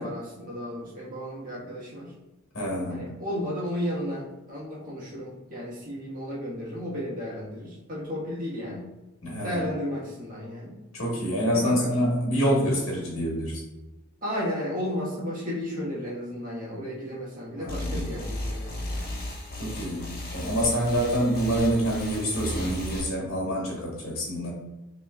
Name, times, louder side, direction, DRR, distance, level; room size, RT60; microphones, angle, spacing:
voice 1, 0.0-2.1 2.9-8.9 9.4-10.8 11.5-11.9 14.2-19.2, equal, 40° right, -5 dB, 1.4 m, -33 dB
voice 2, 2.5-3.2 9.2-9.7 10.9-13.6 17.5-18.1 19.6-24.5, equal, 65° left, -3 dB, 1.2 m, -27 dB
sound 1, 17.7-23.0, left 1 dB, 40° left, 1.1 m, -34 dB
6.0 x 3.0 x 2.3 m, 1.1 s
head